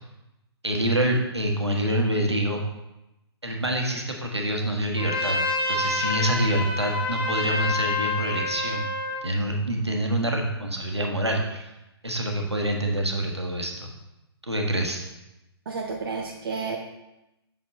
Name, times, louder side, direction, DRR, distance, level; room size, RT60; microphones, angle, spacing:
voice 1, 0.6-2.6 3.4-5.4 5.7-8.9 9.2-11.7 12.0-13.9 14.4-15.0, right 1 dB, 85° right, 1 dB, 1.1 m, -26 dB
Trumpet, 5.0-9.2, left 2 dB, 30° left, 1.8 m, -28 dB
voice 2, 15.7-16.8, right 4 dB, 55° right, 1 dB, 0.7 m, -31 dB
6.4 x 4.4 x 4.1 m, 0.94 s
figure-of-eight pair, 120°, 14 cm